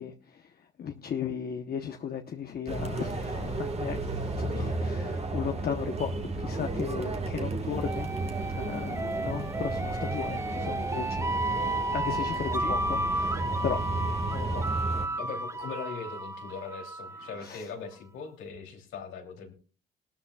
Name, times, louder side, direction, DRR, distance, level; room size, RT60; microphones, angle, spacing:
voice 1, 0.0-8.1 8.5-13.8 14.3-15.2 17.4-17.7, left 7 dB, 50° left, 5 dB, 1.0 m, -36 dB
sound 1, 2.7-15.1, right 2 dB, 30° right, 1.6 m, -33 dB
sound 2, 7.8-17.4, right 2 dB, 15° right, 0.6 m, -33 dB
voice 2, 15.2-19.5, left 5 dB, 85° left, 2 dB, 3.0 m, -40 dB
19.0 x 12.5 x 2.3 m, 0.36 s
cardioid pair, 90°, 20 cm